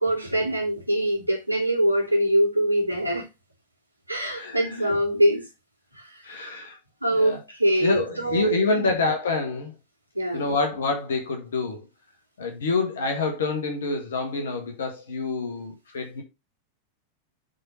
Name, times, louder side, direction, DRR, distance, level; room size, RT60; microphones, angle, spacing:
voice 1, 0.0-3.3 4.1-5.4 6.0-6.6 7.0-8.5 8.7-8.9 10.1-10.5, right 1 dB, 85° right, 2.6 m, -24 dB
voice 2, 4.3-4.9 6.2-6.8 7.1-7.4 7.8-9.7 10.3-11.8 12.4-16.2, left 3 dB, 65° left, 1.7 m, -27 dB
7.5 x 4.1 x 5.6 m
figure-of-eight pair, 90°, 0 cm